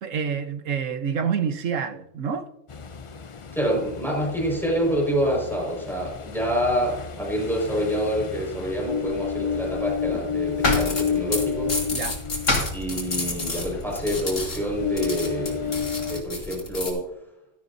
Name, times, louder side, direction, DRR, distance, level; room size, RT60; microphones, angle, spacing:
voice 1, 0.0-2.5 11.9-12.2, right 7 dB, 70° right, 1.4 m, -27 dB
Ocean, 2.7-16.2, left 7 dB, 45° left, 0.4 m, -31 dB
voice 2, 3.5-11.8 12.7-17.1, equal, ahead, 5.1 m, -27 dB
sound 1, 9.5-14.9, left 2 dB, 90° left, 2.7 m, -31 dB
sound 2, 10.7-16.9, left 2 dB, 70° left, 3.2 m, -32 dB
16.5 x 13.5 x 2.7 m
omnidirectional pair, 1.4 m